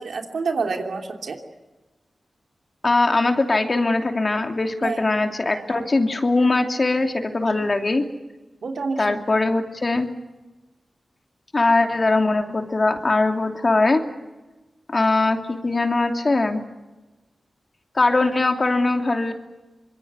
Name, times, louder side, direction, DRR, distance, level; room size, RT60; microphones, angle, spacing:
voice 1, 0.0-1.4 4.8-5.1 5.5-5.9 7.6-7.7 8.6-9.2, right 4 dB, 85° right, 3 dB, 3.0 m, -28 dB
voice 2, 2.8-8.1 9.0-10.1 11.5-14.1 14.9-16.6 17.9-19.3, left 2 dB, 45° left, 4 dB, 3.0 m, -21 dB
25.0 x 22.0 x 8.3 m, 1.1 s
cardioid pair, 50°, 0 cm